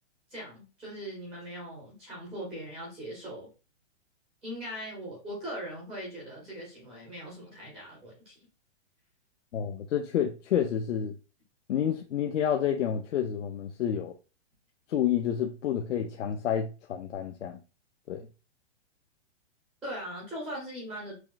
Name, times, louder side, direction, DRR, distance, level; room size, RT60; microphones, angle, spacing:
voice 1, 0.3-3.5 4.4-8.4 19.8-21.1, equal, ahead, 0.3 m, -40 dB
voice 2, 9.5-11.2 11.7-14.1 14.9-17.6 18.1-18.2, left 9 dB, 85° left, 0.6 m, -29 dB
6.0 x 2.3 x 2.4 m
hypercardioid pair, 155°, 35 cm